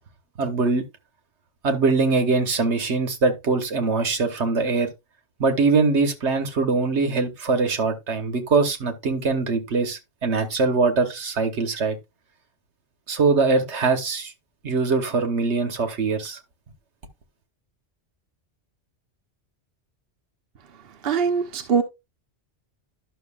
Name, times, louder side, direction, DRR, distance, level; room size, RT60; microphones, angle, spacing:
voice 1, 0.4-0.8 1.6-4.9 5.4-12.0 13.1-14.3 14.6-16.4, right 4 dB, 80° right, 1.5 m, -22 dB
voice 2, 21.0-21.8, right 6 dB, 60° right, 1.1 m, -22 dB
11.5 x 6.3 x 2.4 m
omnidirectional pair, 1.1 m